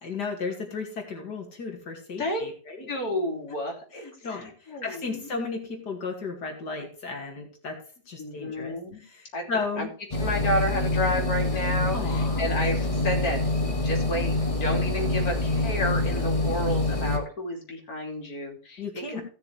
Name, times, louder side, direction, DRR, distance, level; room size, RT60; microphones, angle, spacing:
voice 1, 0.0-2.9 3.9-7.8 8.1-8.7 9.0-9.9 11.9-12.5 18.8-19.2, left 4 dB, 75° left, 1 dB, 3.0 m, -34 dB
voice 2, 2.9-5.3 8.2-9.0 9.3-9.4 9.8-9.9 10.2-13.4 13.8-19.2, left 1 dB, 60° left, 0 dB, 3.5 m, -31 dB
sound 1, 10.1-17.2, left 2 dB, 20° left, 1.9 m, -26 dB
16.5 x 6.7 x 3.3 m, 0.39 s
omnidirectional pair, 1.8 m